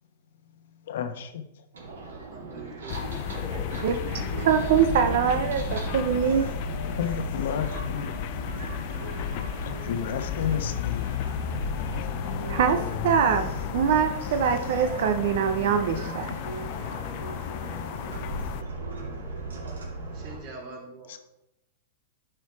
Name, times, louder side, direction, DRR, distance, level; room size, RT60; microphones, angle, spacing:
voice 1, 0.7-1.4 7.0-8.1 8.9-9.1 9.6-11.1 21.1-21.2, left 8 dB, 70° left, 8 dB, 1.0 m, -31 dB
sound 1, 1.7-20.4, right 2 dB, 85° right, 2.4 m, -37 dB
voice 2, 2.3-3.3 6.0-6.7 20.1-21.2, right 3 dB, 45° right, 0 dB, 2.9 m, -44 dB
sound 2, 2.9-18.6, left 11 dB, 50° left, 0.5 m, -33 dB
voice 3, 4.3-6.5 12.2-16.3, right 7 dB, 65° right, 8 dB, 0.7 m, -24 dB
11.0 x 4.5 x 4.7 m, 0.86 s
hypercardioid pair, 125°, 0 cm